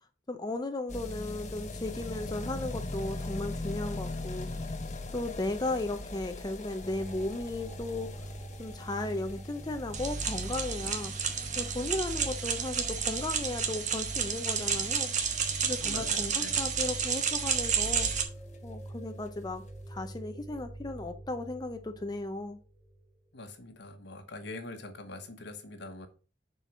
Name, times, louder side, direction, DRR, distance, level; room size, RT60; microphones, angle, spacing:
voice 1, 0.3-4.5 5.1-8.1 8.6-11.1 11.6-15.1 15.6-18.1 18.6-22.6, left 2 dB, 25° left, 0.6 m, -35 dB
sound 1, 0.9-17.7 17.9-18.0 18.2-18.3 18.5-18.6 18.9-19.0 19.7-19.8, left 2 dB, 40° left, 1.1 m, -41 dB
sound 2, 6.8-23.1, right 1 dB, 20° right, 1.7 m, -45 dB
sound 3, 9.9-18.2, right 6 dB, 45° right, 1.4 m, -31 dB
voice 2, 15.8-16.7 23.3-26.1, left 2 dB, 70° left, 1.4 m, -43 dB
6.7 x 4.7 x 6.0 m
head